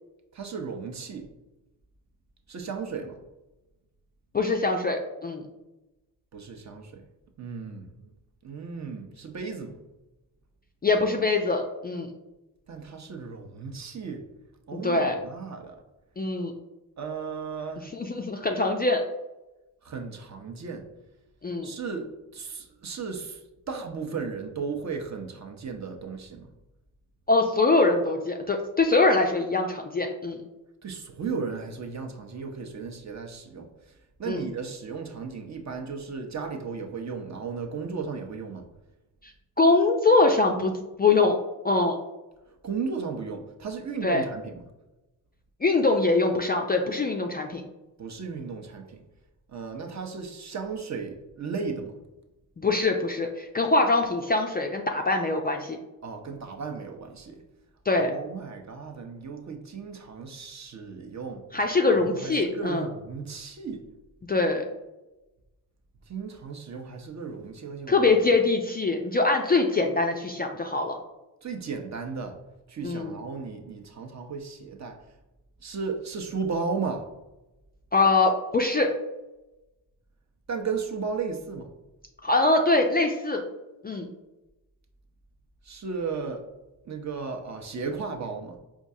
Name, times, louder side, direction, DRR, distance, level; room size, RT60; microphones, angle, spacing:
voice 1, 0.3-1.3 2.5-3.2 6.3-7.0 7.4-8.1 8.4-9.8 12.7-14.2 14.7-15.8 17.0-17.9 19.8-20.8 21.6-23.4 23.7-26.5 30.8-33.7 34.2-38.7 42.6-44.6 48.0-49.0 49.5-52.0 56.0-57.4 57.9-61.4 61.8-63.8 66.1-68.4 71.4-72.4 72.7-75.0 75.6-77.1 80.5-81.7 85.6-86.4 86.9-88.6, right 5 dB, 40° right, 4 dB, 0.7 m, -35 dB
voice 2, 4.3-5.4 10.8-12.1 14.7-15.2 16.2-16.5 17.9-19.0 21.4-21.7 27.3-30.4 34.3-34.4 39.6-40.7 41.0-41.4 41.6-42.0 44.0-44.2 45.6-47.6 52.6-55.8 57.9-58.1 61.5-62.9 64.3-64.6 67.9-71.0 72.8-73.1 77.9-78.9 82.2-83.4 83.8-84.1, left 3 dB, 25° left, 2 dB, 0.4 m, -23 dB
4.4 x 2.3 x 2.7 m, 1.0 s
supercardioid pair, 50°, 44 cm